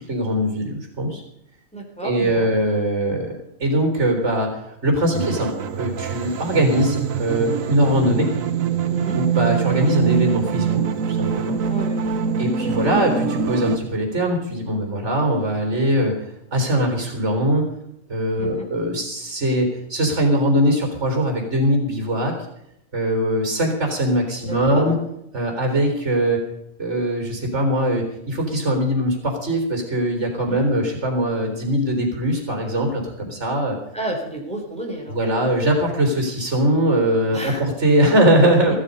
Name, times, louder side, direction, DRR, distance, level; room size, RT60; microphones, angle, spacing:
voice 1, 0.1-1.2 2.0-3.3 3.6-5.5 5.8-8.3 9.1-11.6 12.4-16.1 16.5-17.6 18.1-22.3 22.9-25.0 25.3-26.4 26.8-33.8 35.1-38.7, right 1 dB, 60° right, 3 dB, 4.1 m, -21 dB
voice 2, 1.7-2.5 8.9-9.2 11.7-12.4 18.4-18.7 24.4-24.9 30.5-30.7 33.9-35.2 37.3-37.6, right 1 dB, 5° left, 0 dB, 3.7 m, -31 dB
sound 1, 5.1-13.8, right 7 dB, 80° right, 1.4 m, -24 dB
15.5 x 13.0 x 5.4 m, 0.78 s
omnidirectional pair, 1.4 m